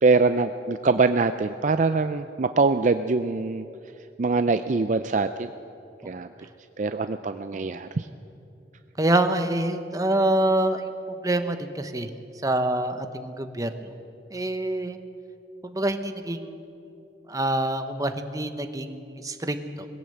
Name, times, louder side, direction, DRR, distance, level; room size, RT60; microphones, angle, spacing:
voice 1, 0.0-3.7 4.2-5.5 6.1-6.3 6.8-8.1, right 4 dB, 45° right, 10 dB, 0.5 m, -23 dB
voice 2, 9.0-10.9 11.2-12.1 12.4-13.9 14.3-15.0 15.6-16.7 17.3-19.9, right 1 dB, 20° right, 8 dB, 1.0 m, -26 dB
20.5 x 16.5 x 7.8 m, 2.7 s
head